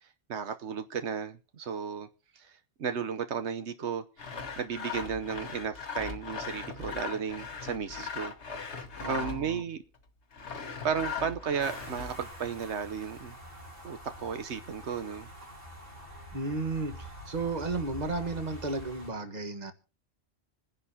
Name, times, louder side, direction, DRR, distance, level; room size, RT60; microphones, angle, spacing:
voice 1, 0.3-2.1 2.3-4.0 4.6-8.3 9.1-9.8 10.8-13.4 13.8-15.3, right 6 dB, 85° right, 1.2 m, -34 dB
Sawing, 4.2-9.6 10.3-12.3, left 5 dB, 80° left, 1.6 m, -39 dB
voice 2, 9.0-9.6 16.3-19.7, right 3 dB, 40° right, 1.5 m, -33 dB
sound 1, 11.6-19.1, equal, 55° right, 4.3 m, -46 dB
26.5 x 10.5 x 2.8 m
omnidirectional pair, 1.1 m